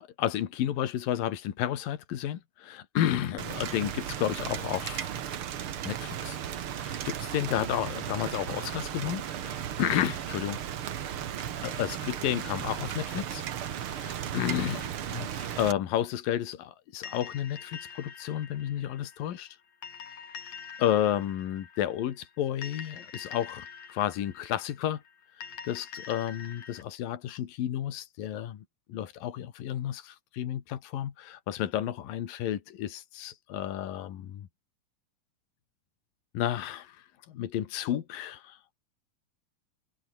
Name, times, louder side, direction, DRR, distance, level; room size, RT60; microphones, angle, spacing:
voice 1, 0.0-5.1 5.8-6.4 6.7-10.6 11.6-19.6 20.8-25.0 25.4-34.5 36.3-38.6, left 11 dB, 80° left, 3.5 m, -32 dB
Rain, 3.4-15.7, right 10 dB, 55° right, 1.6 m, -35 dB
sound 1, 17.0-26.8, left 6 dB, 55° left, 4.2 m, -46 dB
omnidirectional pair, 4.0 m